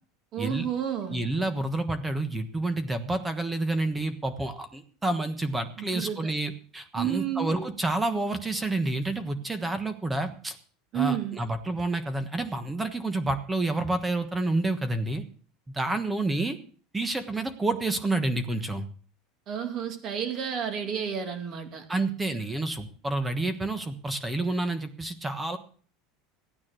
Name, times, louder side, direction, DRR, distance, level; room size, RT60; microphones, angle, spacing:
voice 1, 0.3-1.2 5.8-6.3 6.9-7.7 10.9-11.4 19.5-21.8, right 9 dB, 35° right, 7 dB, 2.6 m, -31 dB
voice 2, 1.1-10.6 10.9-15.2 15.7-16.6 16.9-18.8 21.9-25.6, right 2 dB, 10° right, 10 dB, 1.3 m, -29 dB
15.5 x 9.6 x 6.3 m, 0.43 s
supercardioid pair, 165°, 0 cm